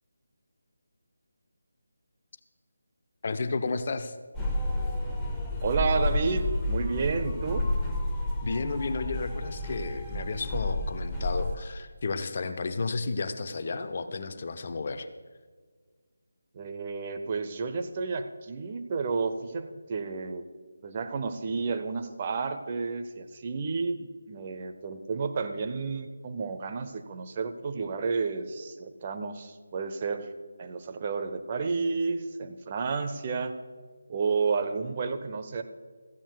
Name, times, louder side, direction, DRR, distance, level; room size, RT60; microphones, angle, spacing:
voice 1, 3.2-4.1 8.4-15.1, left 4 dB, 40° left, 9 dB, 0.7 m, -32 dB
sound 1, 4.3-11.6, left 1 dB, 5° left, 1.0 m, -30 dB
voice 2, 5.6-7.6 16.5-20.4 20.8-30.3 30.6-33.6 34.1-35.6, right 4 dB, 30° right, 6 dB, 0.6 m, -31 dB
16.0 x 14.5 x 2.3 m, 1.5 s
figure-of-eight pair, 155°, 0 cm